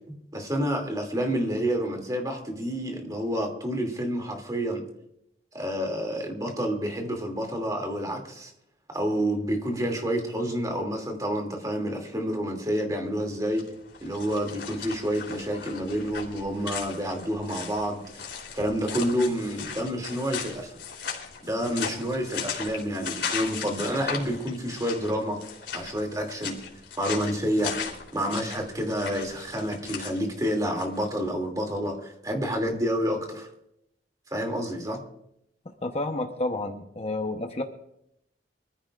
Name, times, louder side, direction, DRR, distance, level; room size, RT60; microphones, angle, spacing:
voice 1, 0.1-4.8 5.5-8.5 8.9-13.6 14.0-20.7 21.4-25.5 25.7-26.6 27.0-27.8 28.1-33.5 34.3-35.0, equal, 20° right, 2 dB, 2.7 m, -29 dB
sound 1, 13.5-31.1, left 6 dB, 75° left, 3.6 m, -37 dB
voice 2, 35.8-37.6, left 2 dB, 35° left, 4 dB, 1.0 m, -30 dB
24.5 x 14.5 x 2.5 m, 0.77 s
head